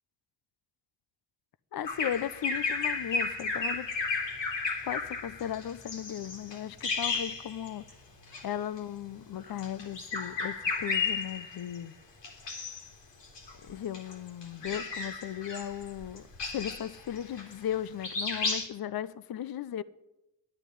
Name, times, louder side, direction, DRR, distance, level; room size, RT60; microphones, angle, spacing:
voice 1, 1.7-3.9 4.8-7.8 8.4-11.9 13.7-19.8, left 10 dB, 55° left, 0.8 m, -36 dB
Bird vocalization bird call bird song, 1.9-7.9 8.2-8.5 9.5-11.8 12.2-12.9 13.2-17.8 18.0-18.6, left 4 dB, 75° left, 4.1 m, -33 dB
11.5 x 9.8 x 10.0 m
supercardioid pair, 60°, 43 cm